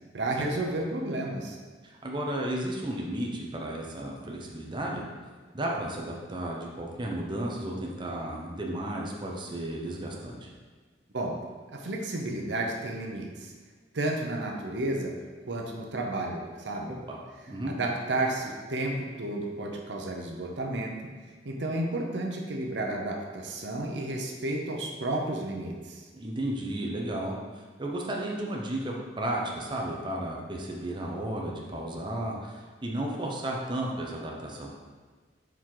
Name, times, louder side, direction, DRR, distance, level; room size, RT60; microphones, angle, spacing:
voice 1, 0.1-1.6 11.1-11.4 11.7-13.5 13.9-15.1 15.5-17.0 17.6-20.9 21.4-26.0, right 2 dB, 75° right, 1 dB, 0.8 m, -32 dB
voice 2, 1.8-5.0 5.5-10.5 17.1-17.2 17.5-17.8 26.1-27.3 27.8-34.7, right 1 dB, 25° right, -2 dB, 0.9 m, -33 dB
7.0 x 4.6 x 3.9 m, 1.4 s
head